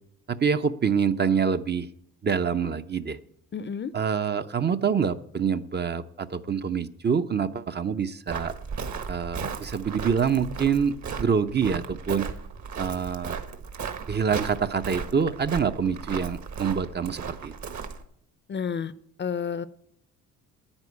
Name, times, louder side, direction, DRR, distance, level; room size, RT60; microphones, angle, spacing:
voice 1, 0.3-1.9 2.2-3.2 3.9-8.5 9.1-12.3 12.8-13.4 14.1-17.5, right 6 dB, 30° right, 10 dB, 0.6 m, -26 dB
voice 2, 3.5-3.9 18.5-18.9 19.2-19.6, left 7 dB, 30° left, 16 dB, 0.6 m, -30 dB
Walk footsteps, 8.3-18.0, right 6 dB, 50° right, 1.5 m, -36 dB
9.7 x 9.2 x 8.2 m, 0.70 s
cardioid pair, 85°, 36 cm